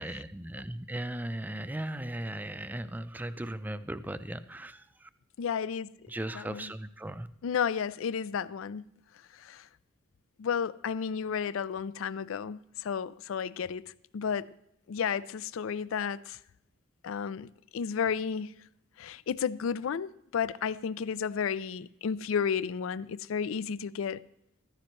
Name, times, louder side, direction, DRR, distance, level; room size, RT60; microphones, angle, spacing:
voice 1, 0.0-5.1 6.1-7.3, right 1 dB, 10° right, 0.4 m, -37 dB
voice 2, 5.4-5.9 6.4-6.7 7.4-8.8 9.3-9.7 10.4-14.5 14.9-16.4 17.0-18.5 19.0-24.2, left 7 dB, 80° left, 0.4 m, -32 dB
14.5 x 13.5 x 3.2 m
head